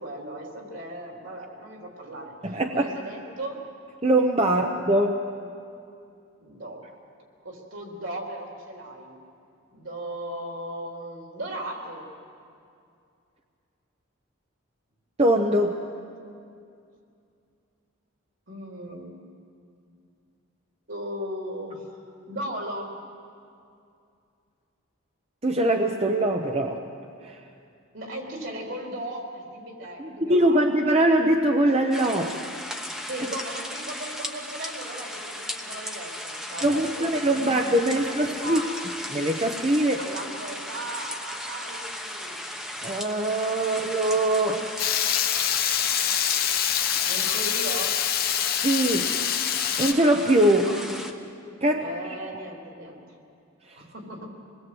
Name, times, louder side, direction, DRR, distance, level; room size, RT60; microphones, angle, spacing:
voice 1, 0.0-3.6 4.4-4.5 6.4-6.9 7.4-9.1 9.7-12.1 18.5-19.2 20.9-21.9 22.3-23.0 27.9-30.7 33.1-37.7 37.9-38.7 40.0-42.4 47.0-48.0 50.7-51.0 51.8-53.0 53.8-54.3, right 1 dB, 65° right, 0 dB, 3.9 m, -37 dB
voice 2, 2.4-2.9 4.0-5.2 15.2-15.8 25.4-26.8 27.2-27.4 30.0-32.4 36.6-38.6 39.1-40.1 42.8-44.7 48.5-49.1 49.8-50.7 51.6-51.9, right 1 dB, 30° right, 3 dB, 0.9 m, -22 dB
sound 1, 31.9-51.1, left 1 dB, ahead, 1.0 m, -36 dB
Water tap faucet / Liquid, 44.8-49.9, left 10 dB, 45° left, 1.1 m, -25 dB
26.5 x 20.5 x 7.9 m, 2.5 s
head